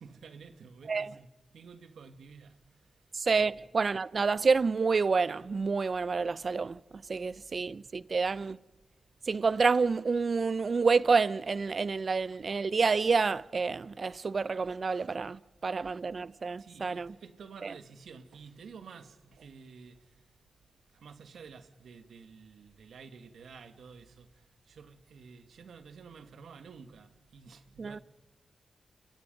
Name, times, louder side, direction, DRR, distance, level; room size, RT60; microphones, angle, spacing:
voice 1, 0.0-3.0 3.4-3.5 16.6-20.3 20.9-28.0, right 5 dB, 80° right, 1.7 m, -51 dB
voice 2, 3.1-6.8 7.1-8.6 9.3-17.2 17.6-17.7 27.8-28.0, right 4 dB, 55° right, 0.7 m, -28 dB
29.5 x 23.5 x 5.3 m
supercardioid pair, 45°, 0 cm